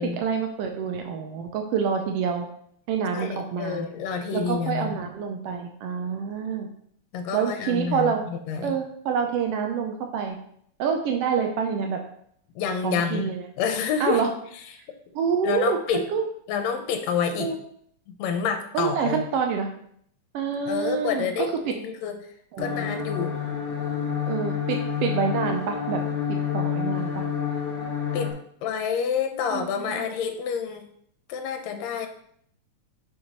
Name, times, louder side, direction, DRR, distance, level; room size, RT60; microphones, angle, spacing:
voice 1, 0.0-2.5 2.9-3.9 4.3-6.7 7.3-8.2 8.6-10.4 10.8-12.0 12.8-13.4 14.0-14.3 15.1-16.2 17.4-17.6 18.7-19.7 20.3-21.7 22.5-23.0 24.3-26.0 26.3-27.2 29.5-30.0, right 6 dB, 90° right, 4 dB, 1.3 m, -27 dB
voice 2, 3.1-5.0 7.1-8.8 12.6-13.3 13.6-14.2 15.4-16.1 16.5-17.5 18.1-19.3 20.7-22.2 22.6-23.4 28.1-28.3 28.6-30.9 31.3-32.1, left 6 dB, 75° left, 6 dB, 1.9 m, -28 dB
sound 1, 22.6-28.3, left 7 dB, 60° left, 1.5 m, -28 dB
6.3 x 5.3 x 3.0 m, 0.66 s
omnidirectional pair, 3.3 m